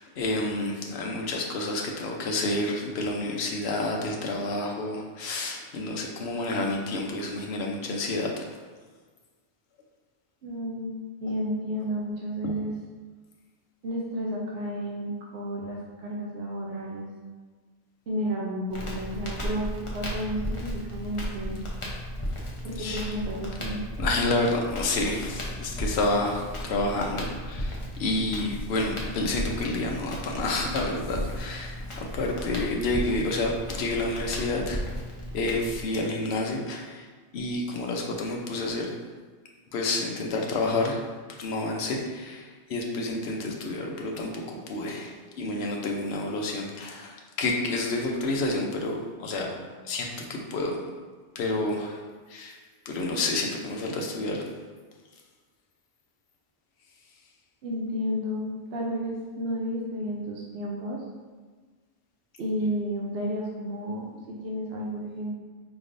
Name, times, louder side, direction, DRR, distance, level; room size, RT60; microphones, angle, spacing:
voice 1, 0.0-8.5 12.4-12.5 22.8-23.1 24.0-34.9 35.3-37.1 37.3-38.9 39.7-41.0 41.4-49.5 49.8-50.8 51.3-52.0 52.3-52.6 52.9-54.5, left 2 dB, 70° left, 0 dB, 0.9 m, -29 dB
voice 2, 10.4-10.9 11.2-12.7 13.8-17.1 18.1-21.6 22.6-23.8 57.6-61.0 62.4-65.3, equal, 65° right, -2 dB, 0.8 m, -32 dB
Crackle, 18.7-35.8, equal, 35° left, 0.7 m, -35 dB
4.8 x 3.4 x 2.6 m, 1.4 s
omnidirectional pair, 1.2 m